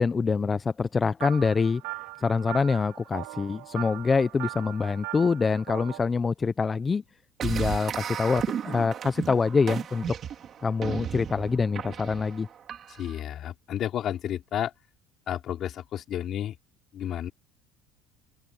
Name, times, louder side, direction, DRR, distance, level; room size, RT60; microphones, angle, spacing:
voice 1, 0.0-1.8 2.2-7.0 7.4-10.1 10.6-12.5, left 4 dB, 20° left, 0.6 m, -25 dB
sound 1, 1.2-6.0, right 28 dB, 85° right, 3.9 m, -39 dB
sound 2, 7.4-13.2, right 9 dB, 40° right, 3.7 m, -34 dB
voice 2, 12.9-14.7 15.3-16.6 16.9-17.3, left 11 dB, 45° left, 4.4 m, -31 dB
open air
cardioid pair, 135°, 0 cm